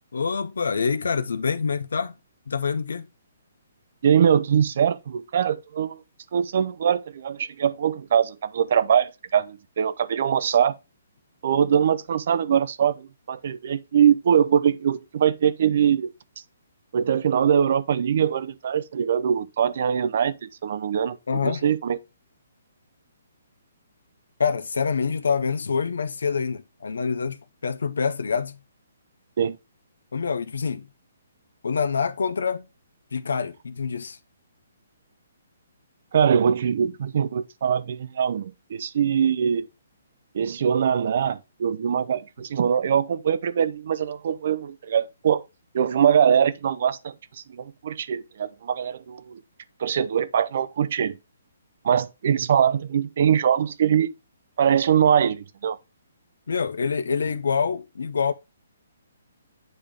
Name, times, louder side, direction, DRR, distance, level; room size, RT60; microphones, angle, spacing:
voice 1, 0.1-2.2 2.5-3.1 21.3-21.6 24.4-28.6 30.1-30.9 31.6-32.7 33.1-34.2 56.5-58.3, left 5 dB, 85° left, 0.6 m, -26 dB
voice 2, 4.0-6.0 6.3-10.8 11.4-16.1 16.9-22.0 29.4-29.6 36.1-39.7 40.3-45.4 45.7-47.1 47.5-49.4 49.8-51.2 51.8-54.1 54.6-55.8, right 8 dB, 45° right, 0.5 m, -22 dB
8.8 x 3.5 x 3.6 m
hypercardioid pair, 170°, 0 cm